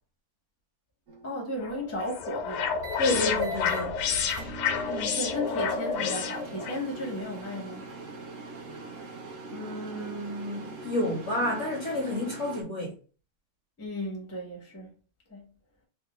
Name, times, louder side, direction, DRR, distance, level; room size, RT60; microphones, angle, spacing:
sound 1, 1.1-1.4 2.8-3.0 3.4-3.8 4.3-12.6, right 4 dB, 65° right, 0.7 m, -42 dB
voice 1, 1.2-2.8 4.9-7.8 13.8-14.9 15.3-15.5, left 1 dB, 20° left, 0.4 m, -35 dB
sound 2, 1.6-6.8, left 6 dB, 85° left, 1.4 m, -30 dB
voice 2, 3.0-4.0 9.5-13.0, left 1 dB, 60° left, 0.7 m, -30 dB
3.5 x 2.2 x 3.0 m
omnidirectional pair, 2.1 m